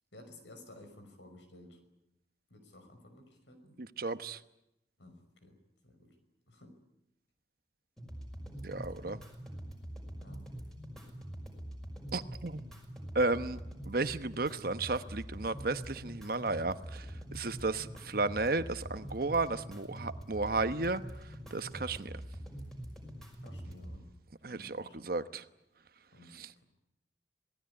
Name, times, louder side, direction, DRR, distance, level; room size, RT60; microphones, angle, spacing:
voice 1, 0.1-1.8 2.5-3.8 5.0-5.6 5.8-6.1 6.5-6.7 10.2-10.4 23.4-24.1 24.5-25.2 26.1-26.6, left 1 dB, 75° left, 5.7 m, -55 dB
voice 2, 3.8-4.4 8.6-9.2 12.1-12.7 13.1-13.6 13.9-17.1 17.3-21.0 21.5-22.1 24.4-25.4 26.4-26.5, right 3 dB, 50° right, 1.0 m, -33 dB
sound 1, 8.0-24.0, equal, 5° left, 5.7 m, -45 dB
27.0 x 18.5 x 9.8 m
head